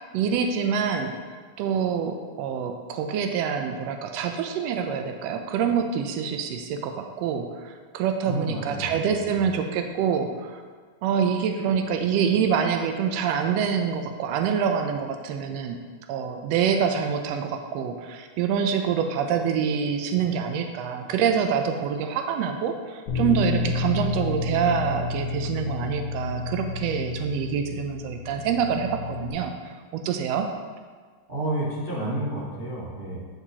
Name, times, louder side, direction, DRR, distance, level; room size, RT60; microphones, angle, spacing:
voice 1, 0.1-1.1 1.6-10.6 11.0-15.8 16.1-30.5, right 7 dB, 85° right, 6 dB, 1.4 m, -26 dB
voice 2, 8.2-9.5 31.3-33.2, right 1 dB, 30° right, -9 dB, 1.2 m, -30 dB
Bass guitar, 23.1-29.3, left 4 dB, 60° left, 1.6 m, -30 dB
9.7 x 6.0 x 2.8 m, 1.5 s
omnidirectional pair, 3.5 m